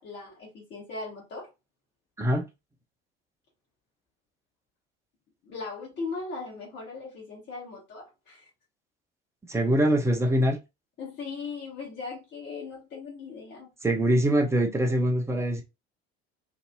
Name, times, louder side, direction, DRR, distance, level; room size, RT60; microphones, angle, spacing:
voice 1, 0.0-1.5 5.4-8.5 11.0-13.7, left 4 dB, 35° left, 1.3 m, -38 dB
voice 2, 9.5-10.6 13.8-15.6, right 1 dB, 10° right, 0.7 m, -23 dB
2.9 x 2.6 x 2.2 m
figure-of-eight pair, 60°, 32 cm